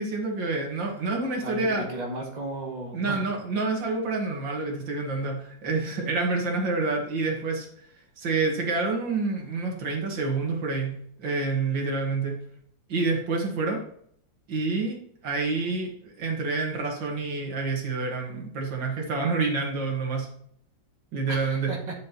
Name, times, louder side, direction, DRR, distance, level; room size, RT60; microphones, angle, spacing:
voice 1, 0.0-1.9 2.9-7.7 8.2-10.9 11.2-12.3 12.9-13.8 14.5-15.0 15.2-20.3 21.1-21.7, right 3 dB, 75° right, 1 dB, 2.4 m, -28 dB
voice 2, 1.4-3.3 21.3-21.8, right 2 dB, 20° right, -2 dB, 2.2 m, -35 dB
11.5 x 7.7 x 3.0 m, 0.64 s
omnidirectional pair, 2.0 m